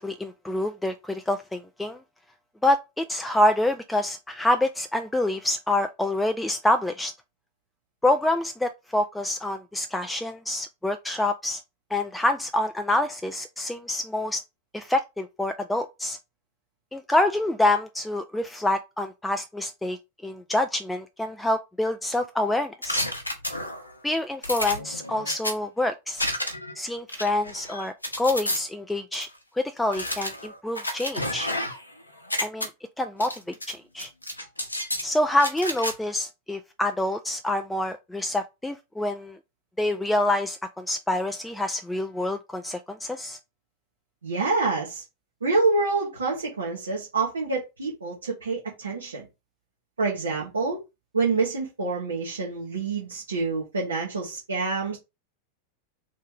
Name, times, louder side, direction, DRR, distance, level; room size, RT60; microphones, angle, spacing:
voice 1, 0.0-2.0 2.6-7.1 8.0-11.6 11.9-14.4 14.7-16.2 16.9-20.0 20.2-23.0 24.0-26.3 26.8-29.3 29.6-31.5 32.4-32.7 33.0-33.3 33.7-34.1 35.0-39.4 39.8-43.4, left 1 dB, 5° left, 0.3 m, -26 dB
sound 1, 22.8-23.9 24.4-25.5 26.2-26.7 27.1-28.6 29.1-29.2 29.9-31.9 32.2-32.7 33.2-33.7 34.0-35.1 35.4-35.9, left 1 dB, 85° left, 0.9 m, -30 dB
voice 2, 44.2-45.0 45.4-49.3 50.0-50.8 51.1-55.0, right 3 dB, 75° right, 1.1 m, -27 dB
3.2 x 3.1 x 3.7 m
figure-of-eight pair, 90°, 0 cm